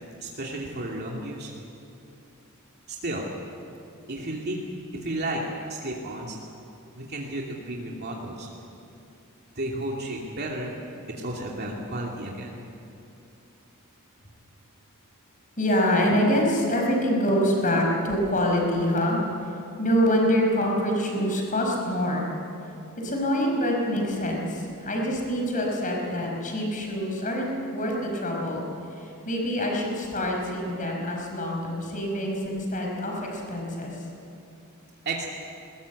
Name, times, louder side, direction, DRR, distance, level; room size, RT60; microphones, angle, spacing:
voice 1, 0.2-1.5 2.9-3.3 4.1-4.6 5.0-5.4 5.7-6.4 6.9-8.5 9.5-10.8 11.2-12.6 35.0-35.3, right 1 dB, 50° right, -2 dB, 2.6 m, -32 dB
voice 2, 15.6-19.5 19.8-22.4 23.0-28.6 28.9-34.0, equal, 35° left, 0 dB, 5.2 m, -25 dB
21.0 x 20.0 x 8.4 m, 2.6 s
head